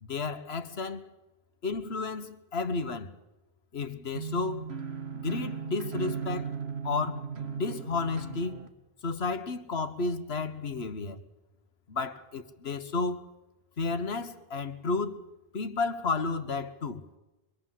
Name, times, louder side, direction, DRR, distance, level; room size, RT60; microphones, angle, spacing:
voice 1, 0.0-1.1 1.6-3.2 3.7-4.7 5.1-6.5 6.8-7.3 7.5-8.6 9.0-11.2 11.9-13.2 13.8-15.2 15.5-17.0, left 3 dB, 85° left, 1.5 m, -32 dB
sound 1, 4.1-8.7, right 6 dB, 90° right, 1.9 m, -37 dB
24.5 x 22.5 x 7.6 m
omnidirectional pair, 1.0 m